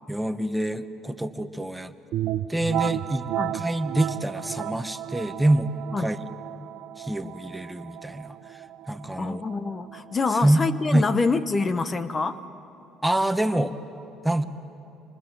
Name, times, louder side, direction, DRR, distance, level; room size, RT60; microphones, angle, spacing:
voice 1, 0.1-1.9 2.5-3.2 3.5-5.7 6.0-6.2 7.0-8.3 8.9-9.4 10.4-10.6 10.9-11.1 13.0-13.7 14.2-14.4, right 1 dB, 5° right, 9 dB, 1.2 m, -25 dB
sound 1, 2.1-11.7, right 13 dB, 65° right, 0.6 m, -34 dB
voice 2, 9.2-12.4, left 4 dB, 30° left, 11 dB, 1.0 m, -26 dB
28.0 x 24.5 x 7.5 m, 3.0 s
supercardioid pair, 75°, 0 cm